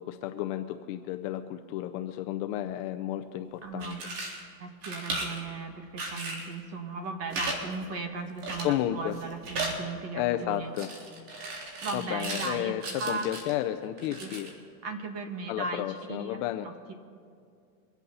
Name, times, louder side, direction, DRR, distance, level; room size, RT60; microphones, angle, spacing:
voice 1, 0.0-4.0 8.6-9.2 10.1-10.9 11.9-14.5 15.5-16.7, left 13 dB, 35° left, 7 dB, 0.5 m, -32 dB
voice 2, 3.6-4.0 4.6-10.7 11.8-12.7 13.0-13.3 14.2-14.3 14.8-16.4 16.6-16.9, right 3 dB, 30° right, 5 dB, 1.8 m, -37 dB
sound 1, 3.6-4.4 4.8-5.4 6.0-6.5 7.3-7.6 7.8-7.9 8.4-8.8 9.1-9.8 10.8-12.5 12.8-13.5 14.0-14.6, right 2 dB, 80° right, 3.8 m, -36 dB
24.5 x 8.3 x 5.5 m, 2.4 s
supercardioid pair, 150°, 46 cm